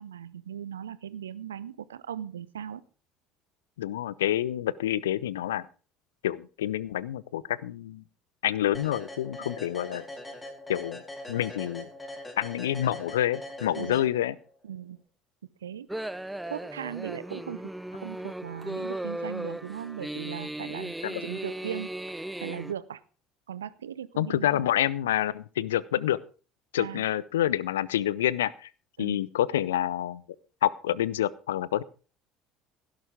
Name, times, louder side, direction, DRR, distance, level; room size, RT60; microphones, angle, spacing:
voice 1, 0.0-2.8 9.4-9.5 13.7-14.0 14.6-15.0 15.6-15.9 16.1-16.2 16.5-17.6 17.9-20.9 21.2-23.0 23.5-24.7 26.8-27.1 29.0-29.2, right 9 dB, 75° right, 18 dB, 0.6 m, -38 dB
voice 2, 3.8-5.7 6.2-8.0 8.4-10.0 10.7-11.0 11.3-11.9 12.4-14.4 21.0-21.2 24.2-26.2 26.7-28.7 29.0-30.2 30.6-31.8, left 12 dB, 70° left, 21 dB, 0.6 m, -28 dB
sound 1, 8.7-14.5, left 1 dB, 15° left, 3.9 m, -42 dB
sound 2, 15.9-22.7, right 1 dB, 5° right, 0.6 m, -36 dB
16.5 x 11.5 x 3.6 m, 0.36 s
figure-of-eight pair, 60°, 0 cm